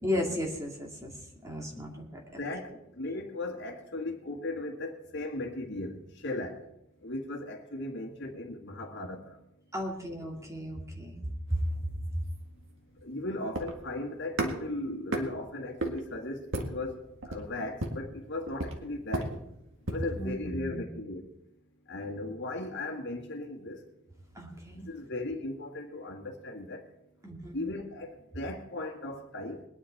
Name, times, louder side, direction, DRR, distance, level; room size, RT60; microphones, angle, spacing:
voice 1, 0.0-2.4 9.7-11.2 11.5-11.6 20.2-20.8 24.3-24.9 27.2-27.6, equal, 15° right, 0 dB, 2.4 m, -35 dB
voice 2, 2.4-6.6 7.0-9.4 13.0-19.3 19.9-21.3 21.9-23.8 24.9-26.8 27.5-29.6, left 2 dB, 60° left, 3 dB, 1.8 m, -37 dB
sound 1, 11.5-20.2, right 1 dB, 65° right, 1.9 m, -37 dB
21.5 x 9.8 x 4.6 m, 0.84 s
head